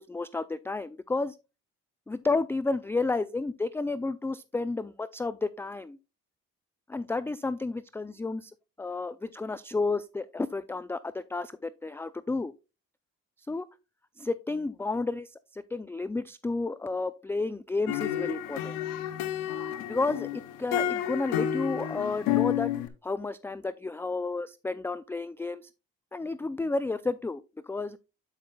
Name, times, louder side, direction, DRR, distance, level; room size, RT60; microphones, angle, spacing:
voice 1, 0.0-1.4 2.1-6.0 6.9-8.5 8.8-12.5 13.5-13.7 14.2-18.7 19.9-22.7 23.0-25.7 26.1-28.0, left 3 dB, 10° left, 15 dB, 0.3 m, -31 dB
sound 1, 17.9-22.9, left 11 dB, 90° left, 0.7 m, -30 dB
11.5 x 5.6 x 2.2 m, 0.30 s
supercardioid pair, 50°, 33 cm